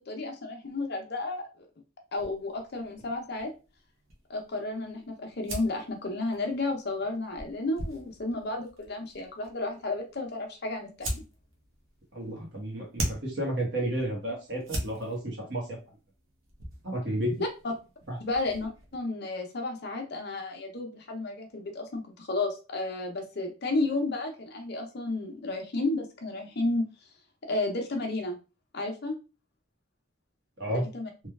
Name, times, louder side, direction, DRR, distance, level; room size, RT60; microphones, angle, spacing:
voice 1, 0.1-1.7 2.1-3.5 4.3-11.2 17.6-17.7 18.2-26.9 27.4-28.4 28.7-29.2 30.7-31.1, left 2 dB, 50° left, 2 dB, 0.6 m, -32 dB
sound 1, 2.1-19.0, right 1 dB, 75° right, 0.8 m, -42 dB
voice 2, 12.1-15.8 16.8-17.3 18.1-18.2 30.6-30.9, right 1 dB, 55° right, -1 dB, 1.0 m, -32 dB
3.1 x 2.3 x 2.3 m, 0.32 s
head